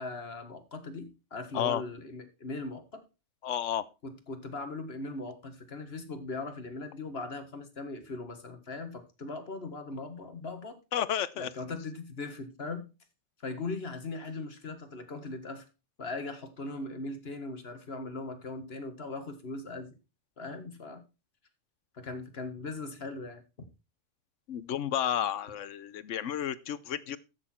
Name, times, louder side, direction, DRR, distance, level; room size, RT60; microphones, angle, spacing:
voice 1, 0.0-3.0 4.0-10.8 11.4-12.9 13.4-15.7 16.0-20.0 20.4-21.0 21.9-23.4, left 3 dB, 55° left, 1.9 m, -39 dB
voice 2, 3.4-3.8 10.9-11.5 24.5-27.2, left 10 dB, 90° left, 1.1 m, -31 dB
14.0 x 6.6 x 4.3 m
omnidirectional pair, 1.2 m